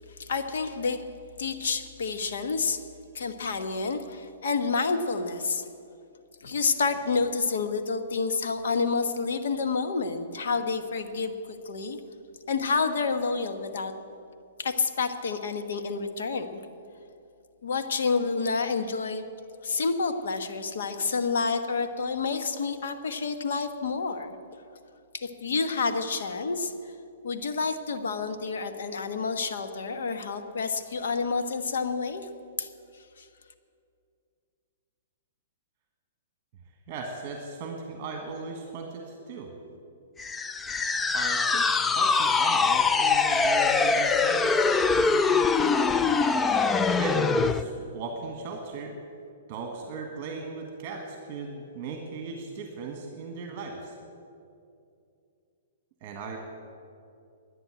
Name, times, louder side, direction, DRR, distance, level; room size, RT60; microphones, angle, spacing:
voice 1, 0.2-1.0 1.4-2.8 3.1-5.6 6.4-11.3 11.6-12.0 12.5-13.9 14.6-16.5 17.6-19.2 19.6-24.3 25.1-26.7 27.2-32.3 32.6-32.7 33.2-33.3, left 4 dB, 75° left, 8 dB, 1.2 m, -29 dB
voice 2, 36.9-39.5 41.1-44.6 45.0-46.2 46.9-49.0 49.5-53.9 56.0-56.4, right 4 dB, 30° right, 3 dB, 1.6 m, -37 dB
sound 1, 40.2-47.6, left 4 dB, 10° left, 0.3 m, -23 dB
12.0 x 9.7 x 8.8 m, 2.5 s
hypercardioid pair, 160°, 0 cm